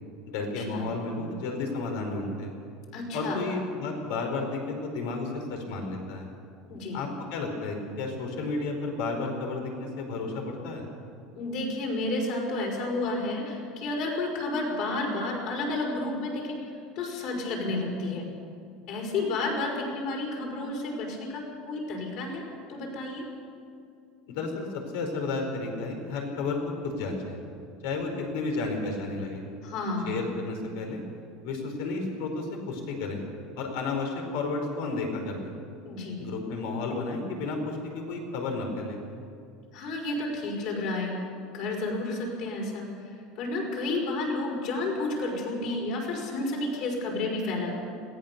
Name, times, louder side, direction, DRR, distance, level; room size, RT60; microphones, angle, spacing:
voice 1, 0.3-2.5 3.1-6.3 6.9-10.8 24.3-26.6 26.8-27.4 27.8-29.4 30.0-31.0 31.4-33.2 33.6-35.5 36.2-39.0, left 3 dB, 75° left, 3 dB, 4.6 m, -32 dB
voice 2, 2.9-3.4 6.7-7.0 11.3-16.6 17.0-18.3 18.9-22.4 22.7-23.3 29.6-30.2 35.8-36.2 39.7-41.2 41.5-42.9 43.4-47.7, left 2 dB, 50° left, 0 dB, 5.4 m, -31 dB
21.5 x 17.5 x 6.9 m, 2.4 s
cardioid pair, 170°, 0 cm